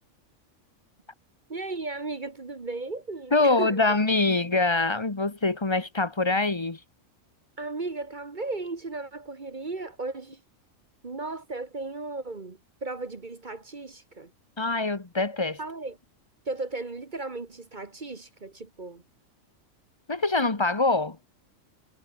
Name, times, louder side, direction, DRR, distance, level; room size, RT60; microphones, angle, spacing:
voice 1, 1.5-3.9 7.6-10.4 11.0-14.3 15.6-16.0 16.5-19.0, right 3 dB, 35° right, 1.5 m, -35 dB
voice 2, 3.3-6.8 14.6-15.6 20.1-21.2, left 3 dB, 20° left, 1.3 m, -24 dB
omnidirectional pair, 1.4 m